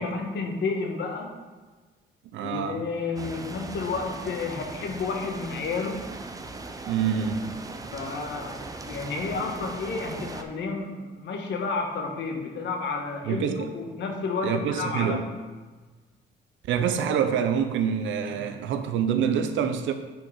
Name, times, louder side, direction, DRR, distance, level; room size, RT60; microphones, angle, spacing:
voice 1, 0.0-1.3 2.4-6.0 7.9-15.2 18.3-18.5, left 4 dB, 70° left, 3 dB, 1.2 m, -31 dB
voice 2, 2.3-2.8 6.9-7.6 13.2-13.7 14.4-15.2 16.7-19.9, right 7 dB, 80° right, 8 dB, 0.7 m, -26 dB
sound 1, 3.2-10.4, right 3 dB, 20° right, 0.5 m, -39 dB
6.0 x 4.4 x 5.3 m, 1.3 s
cardioid pair, 100°, 19 cm